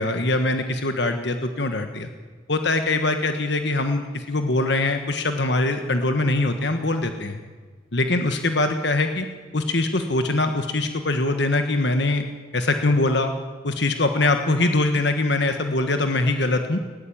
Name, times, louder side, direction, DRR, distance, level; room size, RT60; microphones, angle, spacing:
voice 1, 0.0-2.1 2.5-7.4 7.9-9.3 9.5-12.2 12.5-13.3 13.6-16.8, left 2 dB, 60° left, 7 dB, 1.5 m, -22 dB
20.0 x 16.5 x 8.8 m, 1.5 s
head